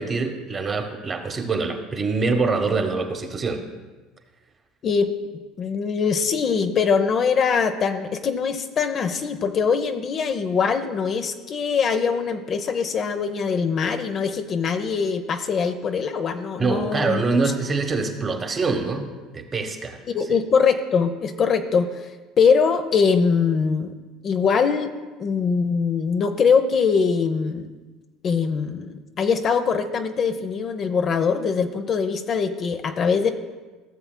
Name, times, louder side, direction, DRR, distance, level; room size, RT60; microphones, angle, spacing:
voice 1, 0.0-3.6 16.6-20.0, right 4 dB, 30° right, 5 dB, 1.1 m, -25 dB
voice 2, 5.6-17.2 20.1-22.1 22.4-23.9 24.2-24.9 25.2-27.7 28.2-33.3, left 5 dB, 45° left, 8 dB, 0.6 m, -22 dB
15.5 x 6.9 x 2.2 m, 1.3 s
supercardioid pair, 90°, 0 cm